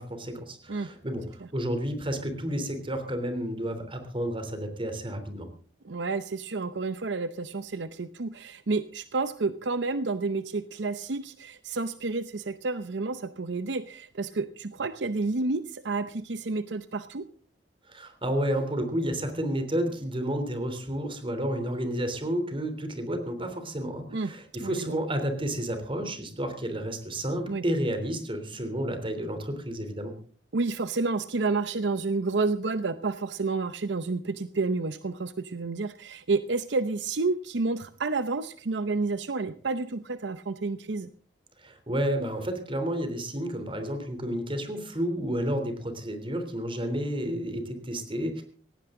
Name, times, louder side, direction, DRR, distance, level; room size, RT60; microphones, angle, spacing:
voice 1, 0.0-5.5 17.9-30.1 41.6-48.4, equal, 30° right, 7 dB, 3.2 m, -31 dB
voice 2, 5.8-17.3 24.1-24.3 24.6-25.0 27.5-27.6 30.5-41.1, right 3 dB, 75° right, 13 dB, 0.7 m, -30 dB
18.0 x 16.5 x 3.8 m, 0.43 s
head